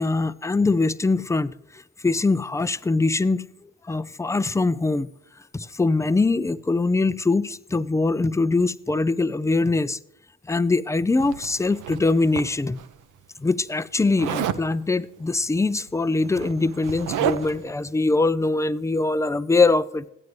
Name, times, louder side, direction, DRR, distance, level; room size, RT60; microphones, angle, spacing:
voice 1, 0.0-5.1 5.5-10.0 10.5-12.8 13.4-20.1, left 3 dB, 10° left, 0.4 m, -23 dB
Zipper (clothing), 11.2-12.9 14.2-14.7 15.8-15.9 16.2-17.7, right 10 dB, 75° right, 0.7 m, -30 dB
14.0 x 9.3 x 3.2 m
supercardioid pair, 60°, 31 cm